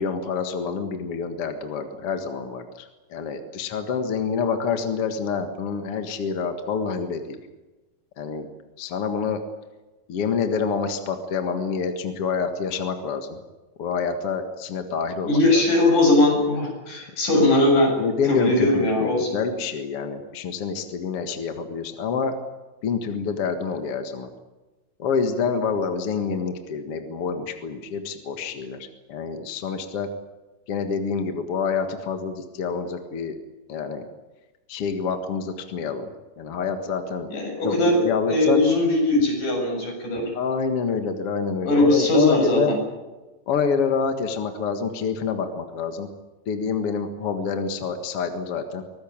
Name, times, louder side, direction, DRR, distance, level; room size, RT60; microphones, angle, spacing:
voice 1, 0.0-7.4 8.2-8.5 8.8-9.4 10.1-13.3 13.8-15.6 18.0-22.3 22.8-24.3 25.0-30.1 30.7-33.4 33.7-34.1 34.7-36.1 36.4-37.3 37.6-37.7 38.0-38.6 40.3-42.7 43.5-46.1 46.5-48.8, left 5 dB, 50° left, 7 dB, 2.3 m, -27 dB
voice 2, 15.2-17.9 18.2-19.4 37.3-40.3 41.7-42.8, left 2 dB, 70° left, 1 dB, 9.1 m, -20 dB
24.5 x 19.5 x 8.8 m, 1.1 s
omnidirectional pair, 3.9 m